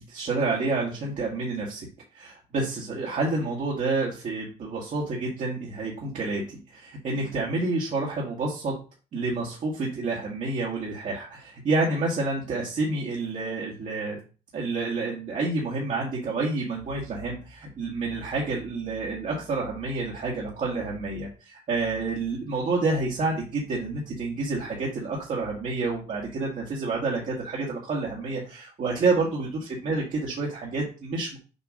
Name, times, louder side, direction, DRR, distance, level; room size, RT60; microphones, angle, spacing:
voice 1, 0.0-1.9 2.1-8.7 9.1-14.2 14.5-31.4, right 3 dB, 45° right, -3 dB, 1.7 m, -29 dB
6.8 x 3.0 x 4.9 m, 0.35 s
cardioid pair, 110°, 17 cm